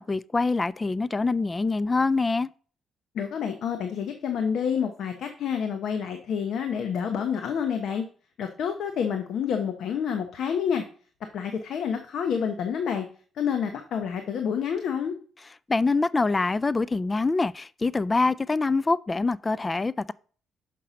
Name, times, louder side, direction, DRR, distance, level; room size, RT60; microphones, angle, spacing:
voice 1, 0.0-2.5 15.7-20.1, left 3 dB, 25° left, 0.3 m, -25 dB
voice 2, 3.1-8.1 8.4-10.8 11.3-13.1 13.3-15.1, left 7 dB, 70° left, 0.9 m, -28 dB
6.6 x 5.7 x 5.1 m
cardioid pair, 90°, 0 cm